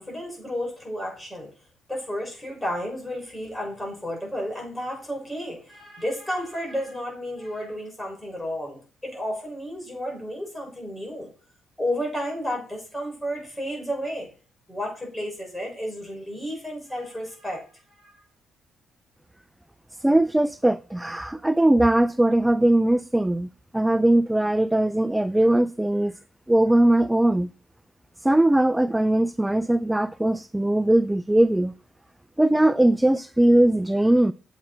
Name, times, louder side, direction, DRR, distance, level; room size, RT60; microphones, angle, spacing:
voice 1, 0.0-1.5 1.9-11.3 11.8-14.3 14.7-17.6 18.0-18.1, equal, 10° left, 5.9 m, -32 dB
voice 2, 20.0-26.1 26.5-27.5 28.2-31.7 32.4-34.3, right 1 dB, 10° right, 0.3 m, -20 dB
8.0 x 7.7 x 4.3 m
cardioid pair, 90°, 0 cm